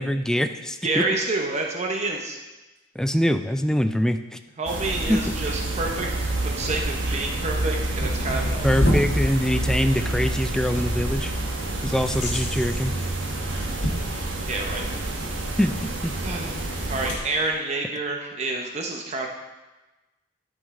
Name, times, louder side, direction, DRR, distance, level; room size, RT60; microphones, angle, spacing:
voice 1, 0.0-1.0 3.0-4.2 5.1-5.2 8.6-11.3 11.8-13.0 15.6-16.1, equal, 5° left, 8 dB, 0.3 m, -23 dB
voice 2, 0.8-2.4 4.6-8.7 14.5-14.9 16.2-16.6 16.9-19.3, right 2 dB, 40° right, 1 dB, 0.8 m, -28 dB
sound 1, 4.7-17.2, right 2 dB, 85° right, 1.2 m, -28 dB
sound 2, 4.9-17.5, left 1 dB, 70° left, 1.6 m, -33 dB
12.0 x 5.3 x 3.6 m, 1.1 s
head